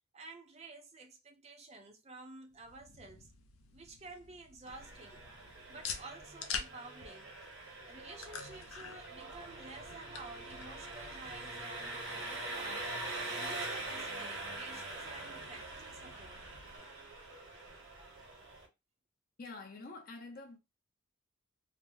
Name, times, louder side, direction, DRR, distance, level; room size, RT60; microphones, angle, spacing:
voice 1, 0.1-3.3 3.7-5.2 5.7-7.3 7.8-12.9 13.4-16.4, right 2 dB, 30° right, 0.5 m, -51 dB
sound 1, 2.5-16.8, left 6 dB, 85° left, 0.5 m, -49 dB
Engine, 4.6-18.7, right 2 dB, 75° right, 1.2 m, -44 dB
voice 2, 19.4-20.6, left 3 dB, 45° left, 0.6 m, -47 dB
2.9 x 2.0 x 3.3 m
head